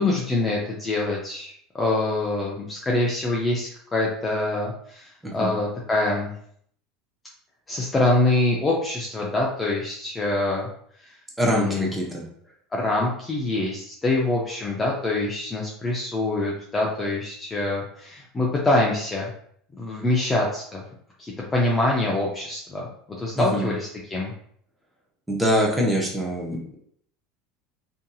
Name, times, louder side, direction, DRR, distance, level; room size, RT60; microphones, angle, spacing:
voice 1, 0.0-6.3 7.7-10.7 11.0-11.1 11.4-11.9 12.7-19.3 19.7-20.8 21.2-22.9 23.2-24.3, left 2 dB, 15° left, -3 dB, 0.4 m, -25 dB
voice 2, 5.2-5.5 11.4-12.2 23.4-23.7 25.3-26.7, equal, 5° right, -3 dB, 0.7 m, -24 dB
2.7 x 2.6 x 2.3 m, 0.65 s
supercardioid pair, 140°, 0 cm